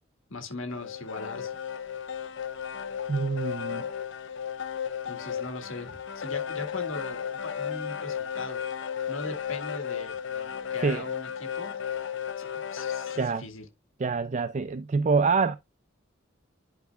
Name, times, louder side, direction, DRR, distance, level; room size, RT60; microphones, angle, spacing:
voice 1, 0.3-1.6 5.1-8.6 9.1-11.7 12.4-13.6, left 2 dB, 85° left, 1.8 m, -39 dB
sound 1, 0.7-13.3, left 8 dB, 65° left, 0.8 m, -34 dB
voice 2, 3.1-3.8 10.8-11.0 13.2-13.4 14.0-15.6, right 4 dB, 35° right, 0.4 m, -26 dB
11.5 x 4.8 x 2.4 m
head